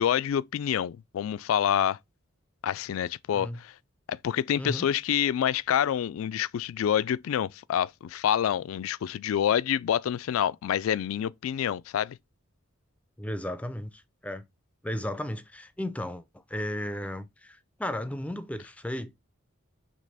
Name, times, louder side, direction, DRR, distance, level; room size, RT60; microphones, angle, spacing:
voice 1, 0.0-2.0 2.6-3.7 4.1-12.2, left 9 dB, 80° left, 0.3 m, -27 dB
voice 2, 4.6-4.9 13.2-14.4 14.8-16.2 16.5-19.1, left 1 dB, 5° left, 0.5 m, -34 dB
5.2 x 3.3 x 5.5 m
head